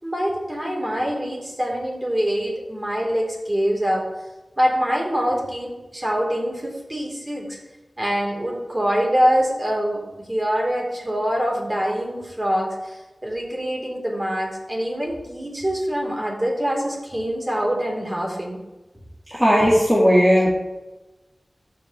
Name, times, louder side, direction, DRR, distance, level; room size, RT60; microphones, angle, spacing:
voice 1, 0.0-4.0 4.6-7.6 8.0-18.6, equal, 25° right, -2 dB, 3.3 m, -24 dB
voice 2, 19.3-20.5, equal, 5° right, -6 dB, 2.0 m, -16 dB
14.5 x 5.2 x 3.1 m, 1.1 s
cardioid pair, 40°, 0 cm